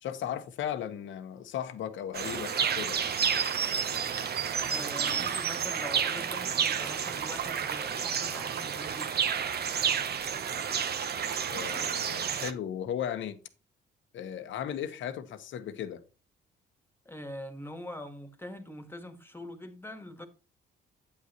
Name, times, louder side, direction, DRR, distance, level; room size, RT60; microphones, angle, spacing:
voice 1, 0.0-3.1 11.5-13.4 14.1-16.0, left 9 dB, 75° left, 1.1 m, -36 dB
sound 1, 2.1-12.5, right 7 dB, 55° right, 0.9 m, -30 dB
voice 2, 4.7-9.2 17.1-20.3, left 1 dB, 10° left, 1.7 m, -43 dB
8.7 x 8.7 x 3.0 m
cardioid pair, 90°, 20 cm